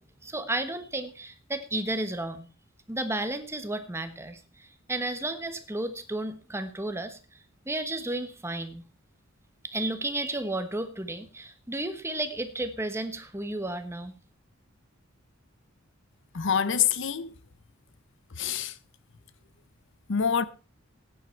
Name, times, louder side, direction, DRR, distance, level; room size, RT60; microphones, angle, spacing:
voice 1, 0.2-2.5 2.9-7.2 7.7-8.8 9.6-14.1, right 2 dB, 10° right, 1.2 m, -33 dB
voice 2, 16.3-17.3 18.4-18.8 20.1-20.4, left 7 dB, 60° left, 0.7 m, -26 dB
16.0 x 9.9 x 4.5 m
head